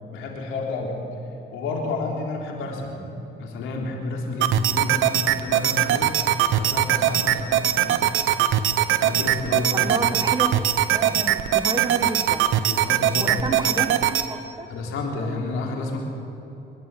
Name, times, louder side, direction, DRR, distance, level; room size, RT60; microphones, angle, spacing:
voice 1, 0.1-1.0 1.5-3.0 3.4-6.1 6.6-8.1 9.0-9.9 12.6-13.6 14.7-16.0, left 3 dB, 90° left, 0 dB, 3.8 m, -30 dB
sound 1, 4.4-14.3, right 11 dB, 80° right, 0.9 m, -21 dB
voice 2, 9.7-12.4 13.2-14.7, right 2 dB, 20° right, 7 dB, 1.6 m, -31 dB
25.0 x 11.5 x 9.2 m, 3.0 s
cardioid pair, 90°, 20 cm